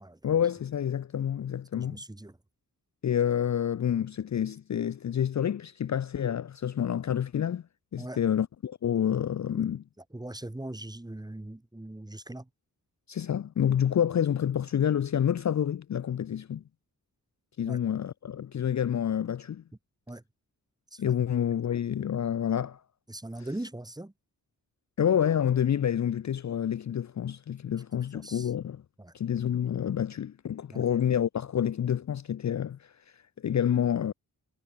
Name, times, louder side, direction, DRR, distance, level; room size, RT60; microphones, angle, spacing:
voice 1, 0.2-2.0 3.0-7.6 7.9-9.8 13.1-16.6 17.6-19.6 21.0-22.8 23.4-23.5 25.0-28.8 29.1-32.9 33.4-34.1, left 9 dB, 50° left, 0.5 m, -28 dB
voice 2, 1.7-2.4 8.0-8.2 10.1-12.5 17.6-17.8 20.1-20.2 20.9-21.0 23.1-24.1 28.1-28.5 29.0-29.1 30.7-30.8, right 1 dB, 10° right, 1.2 m, -40 dB
wide cardioid pair, 120°, 36 cm